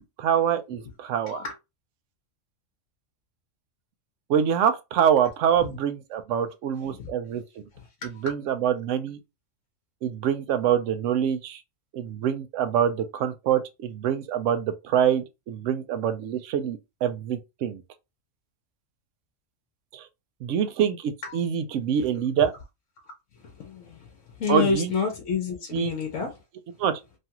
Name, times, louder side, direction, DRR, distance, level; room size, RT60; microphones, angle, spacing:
voice 1, 0.2-1.4 4.3-7.4 8.2-9.2 10.0-11.6 11.9-17.8 19.9-20.0 20.4-22.5 24.5-24.9 25.7-25.9 26.8-27.0, right 8 dB, 75° right, 0.9 m, -25 dB
voice 2, 6.8-7.4 7.7-8.3 21.2-21.4 22.0-22.1 23.0-26.4, left 5 dB, 75° left, 1.1 m, -30 dB
3.1 x 2.3 x 2.8 m
omnidirectional pair, 1.3 m